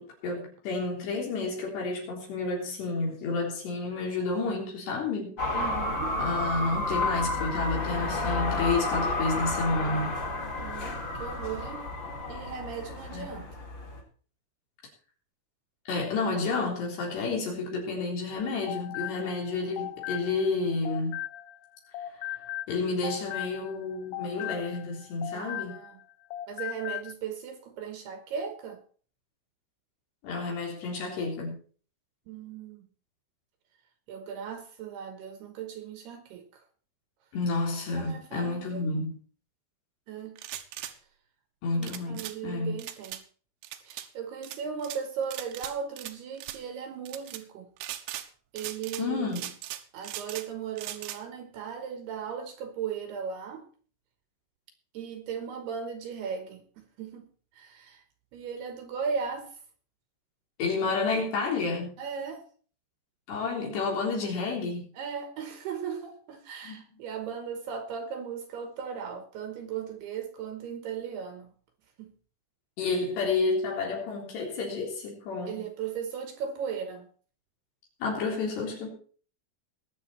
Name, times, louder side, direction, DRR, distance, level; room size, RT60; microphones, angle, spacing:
voice 1, 0.0-5.3 6.2-10.2 13.1-13.3 15.9-21.2 22.7-25.8 30.2-31.6 37.3-39.1 41.6-42.8 49.0-49.5 60.6-61.9 63.3-64.9 66.6-66.8 72.8-75.7 78.0-78.9, left 3 dB, 60° left, 5.7 m, -30 dB
sound 1, 5.4-14.0, left 2 dB, 25° left, 3.6 m, -31 dB
voice 2, 5.5-6.2 10.6-11.9 12.3-13.5 25.3-26.0 26.5-28.8 32.3-32.9 34.1-36.6 37.9-39.1 40.1-40.4 41.8-43.2 43.8-47.7 48.5-49.5 49.9-53.7 54.9-57.3 57.6-58.0 58.3-59.6 62.0-62.4 65.0-71.5 72.0-72.1 75.5-77.1, right 7 dB, 70° right, 2.8 m, -37 dB
sound 2, 18.4-21.7 21.9-26.0 26.3-27.1, left 14 dB, 85° left, 2.4 m, -38 dB
sound 3, 40.4-40.9 41.8-42.4 42.8-43.2 43.6-44.1 44.4-45.0 45.3-46.1 46.4-46.6 47.1-47.4 47.8-48.3 48.6-49.0 49.3-50.5 50.8-51.2, right 13 dB, 85° right, 3.4 m, -39 dB
20.5 x 8.2 x 4.4 m
omnidirectional pair, 5.5 m